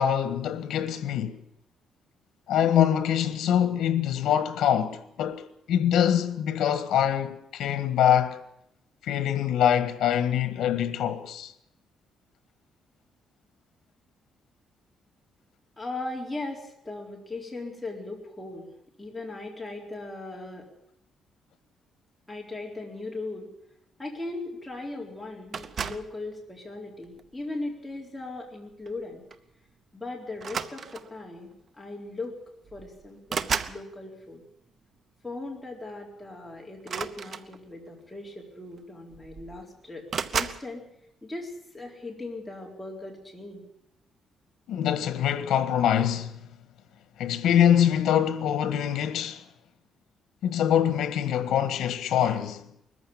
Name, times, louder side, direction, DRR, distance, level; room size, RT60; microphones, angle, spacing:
voice 1, 0.0-1.4 2.5-8.4 9.0-11.5 44.7-46.4 47.2-49.4 50.4-52.6, left 10 dB, 80° left, 1.6 m, -24 dB
voice 2, 15.8-18.7 19.0-20.7 22.3-23.5 24.0-29.2 29.9-32.4 32.7-34.4 35.2-40.1 40.3-40.9 41.2-43.7, left 2 dB, 5° left, 4.1 m, -38 dB
sound 1, 25.5-26.2 27.0-27.4 28.9-29.0 29.3-29.5 30.4-31.2 32.2-32.3 32.6-33.8 36.8-37.9 38.8-38.9 39.1-39.6 40.1-40.7, right 6 dB, 40° right, 0.8 m, -33 dB
20.5 x 14.5 x 8.7 m
cardioid pair, 160°, 0 cm